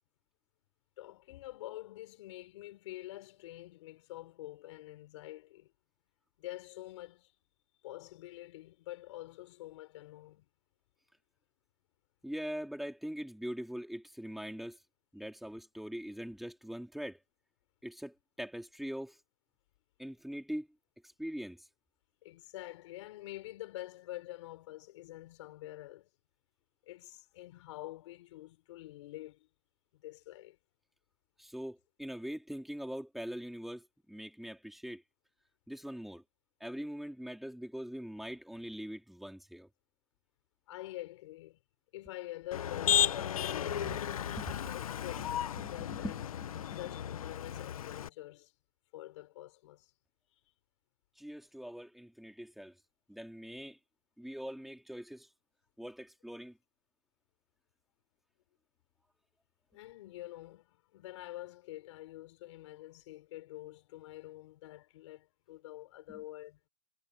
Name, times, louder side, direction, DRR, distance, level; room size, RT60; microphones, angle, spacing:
voice 1, 1.0-5.7 6.4-7.3 7.8-10.5 22.2-26.1 26.9-29.5 29.9-30.6 40.7-41.6 41.9-43.2 45.0-45.4 45.7-46.2 46.8-48.5 48.9-49.9 59.7-66.6, left 16 dB, 60° left, 5.9 m, -47 dB
voice 2, 12.2-14.8 15.1-17.2 17.8-19.2 20.0-20.7 21.2-21.7 31.4-35.0 35.7-36.2 36.6-39.7 43.7-44.8 45.2-45.3 45.6-46.3 46.5-46.6 51.2-52.7 53.1-53.8 54.2-55.3 55.8-56.6 66.1-66.2, equal, ahead, 4.3 m, -42 dB
Motor vehicle (road), 42.5-48.1, left 10 dB, 90° left, 1.3 m, -34 dB
hypercardioid pair, 145°, 18 cm